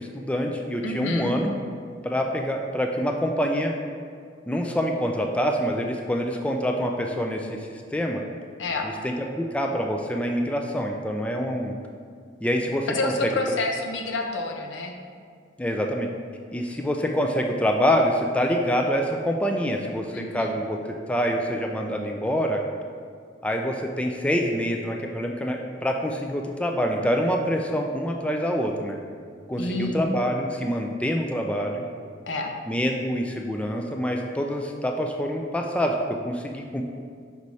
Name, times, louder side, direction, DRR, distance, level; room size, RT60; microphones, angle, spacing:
voice 1, 0.0-1.5 2.0-3.7 4.5-8.2 8.8-11.8 12.4-13.1 13.5-13.6 15.6-16.1 16.5-20.8 21.1-22.6 23.4-29.0 29.5-31.8 32.7-36.8, equal, 5° left, 2 dB, 0.3 m, -26 dB
voice 2, 0.8-1.4 8.6-8.9 12.9-14.9 20.1-20.5 29.6-30.2 32.3-32.5, left 2 dB, 80° left, 3 dB, 0.7 m, -28 dB
5.3 x 4.7 x 4.1 m, 2.2 s
head